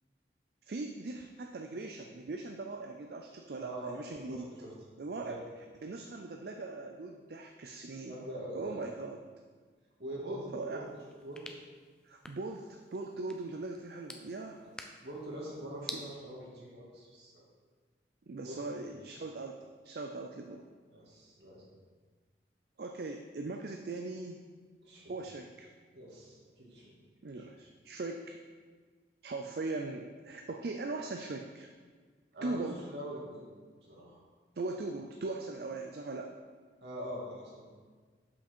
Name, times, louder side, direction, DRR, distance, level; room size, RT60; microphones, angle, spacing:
voice 1, 0.7-4.5 5.0-5.4 5.8-8.2 8.5-9.2 10.5-10.9 12.0-14.6 15.9-16.0 18.3-20.6 22.8-24.4 25.1-25.7 27.2-28.4 29.2-31.7 32.4-32.8 34.6-36.4, right 3 dB, 60° right, 3 dB, 0.4 m, -40 dB
voice 2, 3.6-4.0 4.3-4.7 5.2-5.4 8.0-8.9 10.0-10.8 11.2-11.4 14.6-14.7 15.0-17.4 18.4-18.9 20.9-21.6 24.8-25.1 25.9-27.0 27.3-27.5 32.3-33.4 33.8-34.2 36.8-37.6, equal, 80° right, -4 dB, 2.2 m, -43 dB
sound 1, 10.8-16.0, left 1 dB, 5° left, 0.4 m, -50 dB
7.4 x 5.8 x 4.4 m, 1.5 s
head